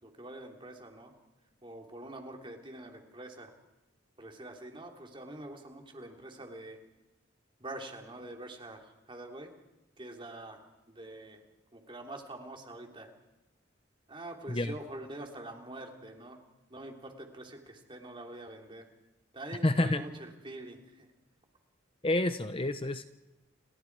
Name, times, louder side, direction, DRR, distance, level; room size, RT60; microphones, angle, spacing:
voice 1, 0.0-1.1 1.6-3.5 4.2-6.8 7.6-9.5 10.0-11.4 11.7-13.1 14.1-16.4 16.7-18.8 19.3-21.1, right 1 dB, 25° right, 2 dB, 3.3 m, -45 dB
voice 2, 19.6-20.0 22.0-23.0, left 1 dB, 30° left, 10 dB, 0.8 m, -28 dB
29.5 x 28.5 x 4.8 m, 1.0 s
head